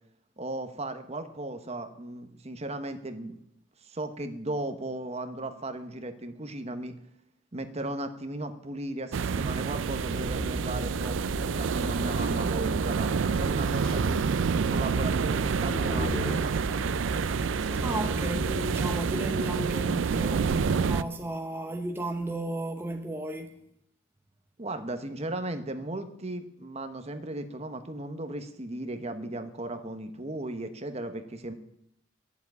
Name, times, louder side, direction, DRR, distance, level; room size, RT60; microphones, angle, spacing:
voice 1, 0.4-3.4 3.8-6.9 7.5-14.2 14.7-16.5 24.6-31.5, right 1 dB, 35° right, 1.1 m, -36 dB
sound 1, 9.1-21.0, right 6 dB, 75° right, 0.4 m, -28 dB
sound 2, 10.0-19.1, left 1 dB, 5° left, 2.8 m, -36 dB
voice 2, 17.8-23.6, right 1 dB, 10° right, 0.9 m, -33 dB
11.5 x 7.3 x 9.5 m
head